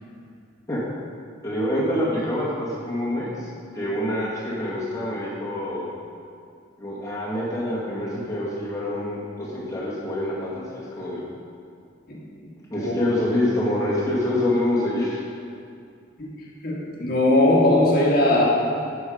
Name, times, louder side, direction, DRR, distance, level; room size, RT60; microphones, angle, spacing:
voice 1, 1.4-3.5 3.7-5.9 6.8-11.2 12.7-15.2, left 1 dB, 15° left, -7 dB, 1.9 m, -26 dB
voice 2, 16.6-18.4, left 1 dB, 45° left, -3 dB, 1.6 m, -19 dB
9.4 x 6.4 x 5.1 m, 2.4 s
head